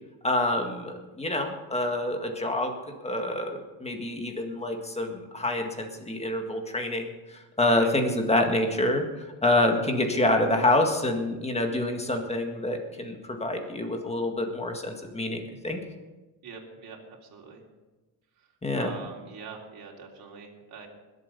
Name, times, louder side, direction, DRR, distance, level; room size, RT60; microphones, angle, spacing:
voice 1, 0.2-2.7 3.0-15.8 18.6-18.9, left 1 dB, 15° left, 4 dB, 1.9 m, -27 dB
voice 2, 16.4-17.6 18.4-18.5 18.7-20.9, right 5 dB, 55° right, -1 dB, 3.5 m, -44 dB
21.0 x 8.1 x 5.4 m, 1.1 s
cardioid pair, 130°, 43 cm